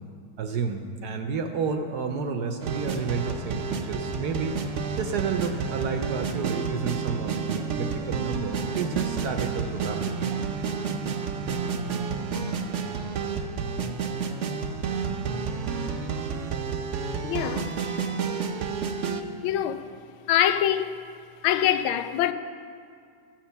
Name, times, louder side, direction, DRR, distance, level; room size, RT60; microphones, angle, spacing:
voice 1, 0.4-4.6 5.0-10.3, right 5 dB, 65° right, 1.0 m, -31 dB
sound 1, 2.6-19.2, right 5 dB, 85° right, 0.6 m, -30 dB
voice 2, 17.2-17.7 19.4-19.8 20.3-21.0 21.4-22.3, left 11 dB, 85° left, 1.4 m, -24 dB
14.0 x 7.4 x 7.0 m
omnidirectional pair, 2.2 m